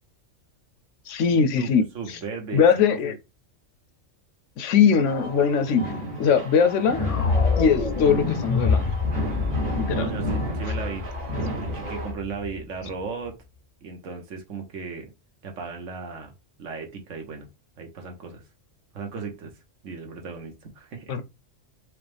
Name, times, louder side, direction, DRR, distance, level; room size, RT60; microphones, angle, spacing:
voice 1, 1.1-2.2 2.5-3.2 4.6-5.8 6.2-7.0 7.6-8.9 9.7-10.1 21.1-21.2, left 6 dB, 75° left, 0.9 m, -21 dB
voice 2, 1.6-3.2 10.0-11.1 11.6-13.4 13.8-15.1 15.4-16.3 16.6-17.5 17.8-18.4 18.9-19.5 19.8-21.2, right 5 dB, 75° right, 1.3 m, -36 dB
sound 1, 4.9-12.1, right 1 dB, 45° right, 1.2 m, -33 dB
sound 2, 6.9-13.0, left 4 dB, 40° left, 0.5 m, -26 dB
4.7 x 2.1 x 3.3 m
omnidirectional pair, 1.3 m